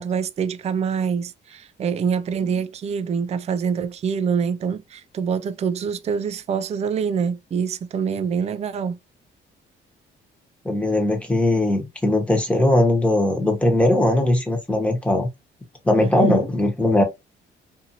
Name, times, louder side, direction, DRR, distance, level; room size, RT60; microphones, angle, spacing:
voice 1, 0.0-9.0 16.0-16.5, right 6 dB, 35° right, 0.3 m, -25 dB
voice 2, 10.6-15.3 15.8-17.0, left 1 dB, 5° left, 1.1 m, -19 dB
2.7 x 2.6 x 2.6 m
cardioid pair, 90°, 20 cm